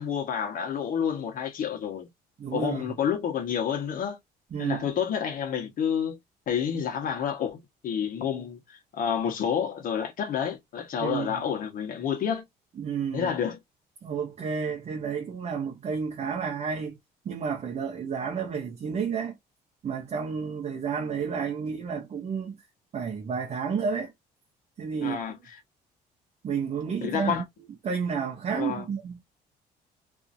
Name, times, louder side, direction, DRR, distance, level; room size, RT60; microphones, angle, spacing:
voice 1, 0.0-2.1 2.5-4.2 4.6-6.2 6.5-12.4 13.1-13.6 25.0-25.5 27.0-27.4 28.5-28.8, left 8 dB, 55° left, 1.1 m, -29 dB
voice 2, 2.4-2.8 4.5-4.8 11.0-11.4 12.8-13.3 14.0-17.0 17.2-19.4 19.8-22.6 22.9-24.1 24.8-25.2 26.4-27.4 27.8-29.2, right 6 dB, 40° right, 0.8 m, -31 dB
2.8 x 2.6 x 2.4 m
cardioid pair, 110°, 17 cm